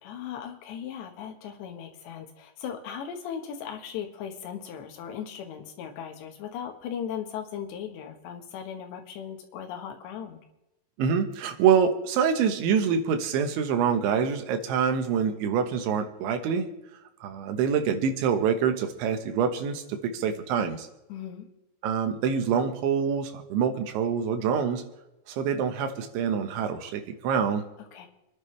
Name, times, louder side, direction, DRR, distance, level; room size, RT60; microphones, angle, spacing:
voice 1, 0.0-10.4 21.1-21.5 27.9-28.1, left 8 dB, 75° left, 4 dB, 3.5 m, -38 dB
voice 2, 11.0-16.7 17.2-20.9 21.8-24.8 25.3-27.7, right 7 dB, 85° right, 6 dB, 3.6 m, -26 dB
28.0 x 10.5 x 3.3 m, 0.93 s
omnidirectional pair, 5.2 m